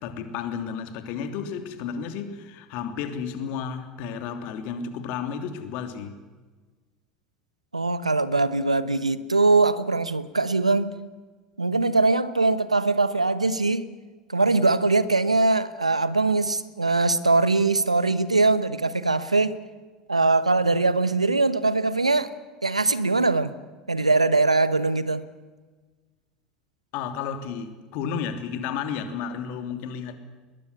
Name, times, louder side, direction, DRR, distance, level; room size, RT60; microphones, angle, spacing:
voice 1, 0.0-6.1 26.9-30.2, left 7 dB, 55° left, 3.1 m, -32 dB
voice 2, 7.7-11.0 11.6-13.9 14.3-19.6 20.1-22.3 22.6-23.5 23.9-25.2, right 3 dB, 90° right, 1.1 m, -22 dB
21.5 x 21.0 x 9.7 m
figure-of-eight pair, 75°, 3 cm